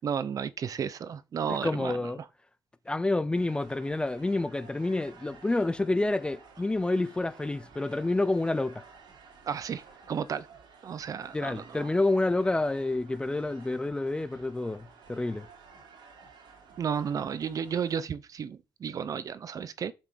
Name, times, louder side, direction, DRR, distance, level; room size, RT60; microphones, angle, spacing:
voice 1, 0.0-2.0 9.5-10.5 10.8-11.9 16.8-19.9, right 7 dB, 45° right, 0.8 m, -33 dB
voice 2, 1.5-2.2 2.9-8.8 11.3-15.5, left 2 dB, 10° left, 0.5 m, -28 dB
sound 1, 3.3-18.0, right 5 dB, 80° right, 3.4 m, -54 dB
7.3 x 5.8 x 7.0 m
cardioid pair, 135°, 8 cm